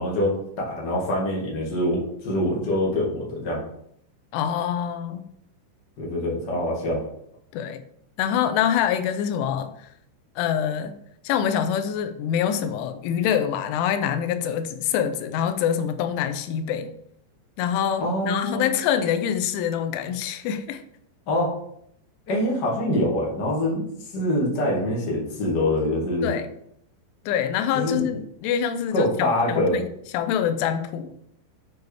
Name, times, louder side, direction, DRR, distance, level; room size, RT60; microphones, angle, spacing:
voice 1, 0.0-3.6 6.0-7.0 18.0-18.7 21.3-21.5 22.3-23.8 24.1-26.3 27.7-28.1 28.9-29.8, left 1 dB, 65° left, -3 dB, 1.0 m, -24 dB
voice 2, 4.3-5.2 7.5-7.8 8.2-9.9 10.4-11.0 11.2-16.9 17.6-20.8 26.2-26.5 27.3-29.9 30.1-31.1, left 9 dB, 85° left, 9 dB, 3.2 m, -25 dB
8.0 x 4.8 x 4.9 m, 0.70 s
omnidirectional pair, 5.4 m